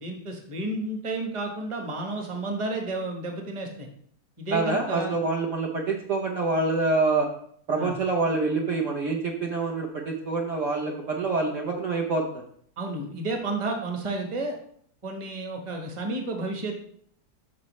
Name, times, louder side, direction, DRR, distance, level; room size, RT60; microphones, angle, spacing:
voice 1, 0.0-3.9 4.4-5.2 7.8-8.0 12.8-14.5 15.0-16.8, right 2 dB, 20° right, 3 dB, 1.0 m, -31 dB
voice 2, 4.5-7.3 7.7-12.4, right 3 dB, 55° right, 0 dB, 1.1 m, -26 dB
12.5 x 4.2 x 3.1 m, 0.63 s
omnidirectional pair, 1.8 m